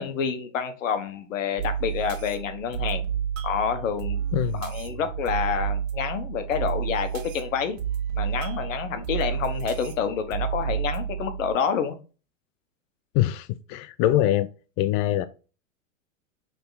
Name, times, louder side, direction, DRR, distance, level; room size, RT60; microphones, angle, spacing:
voice 1, 0.0-3.0 3.4-4.2 4.6-7.8 8.2-12.0, left 7 dB, 75° left, 1.3 m, -28 dB
sound 1, 1.6-11.6, right 8 dB, 75° right, 1.8 m, -30 dB
voice 2, 4.3-4.6 13.1-14.5 14.8-15.2, left 13 dB, 35° left, 0.4 m, -23 dB
6.6 x 3.6 x 4.0 m
hypercardioid pair, 110°, 40 cm